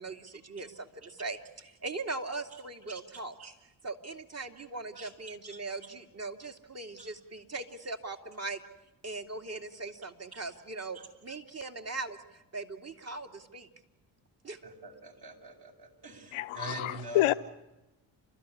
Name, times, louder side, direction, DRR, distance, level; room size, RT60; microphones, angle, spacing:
voice 1, 0.0-3.3 3.8-8.6 9.0-13.7 14.4-14.6, right 3 dB, 30° right, 4 dB, 2.6 m, -40 dB
voice 2, 14.6-17.2, right 3 dB, 50° right, 2 dB, 6.9 m, -44 dB
voice 3, 16.3-17.3, left 16 dB, 75° left, 12 dB, 1.0 m, -28 dB
30.0 x 13.5 x 9.9 m, 1.0 s
hypercardioid pair, 50°, 49 cm